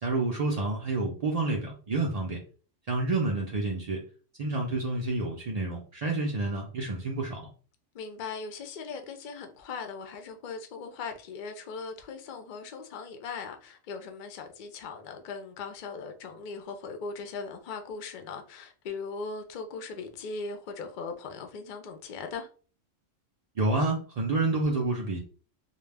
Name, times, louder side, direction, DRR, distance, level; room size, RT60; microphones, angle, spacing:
voice 1, 0.0-2.4 2.9-4.0 4.4-7.4 23.6-25.2, right 2 dB, 80° right, 0.3 m, -29 dB
voice 2, 7.9-22.5, left 4 dB, 60° left, 0.5 m, -39 dB
2.3 x 2.1 x 3.3 m
omnidirectional pair, 1.3 m